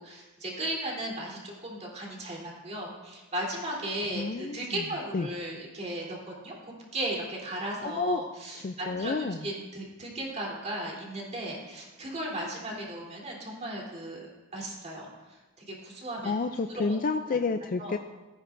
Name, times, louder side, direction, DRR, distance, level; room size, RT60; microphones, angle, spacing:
voice 1, 0.0-9.1 9.4-14.3 14.5-16.3 16.7-17.0 17.8-18.0, right 1 dB, 35° right, -3 dB, 3.4 m, -36 dB
voice 2, 4.1-4.8 5.1-5.3 7.8-8.2 8.6-9.4 16.2-18.0, left 4 dB, 40° left, 7 dB, 0.4 m, -30 dB
17.5 x 14.5 x 2.6 m, 1.1 s
head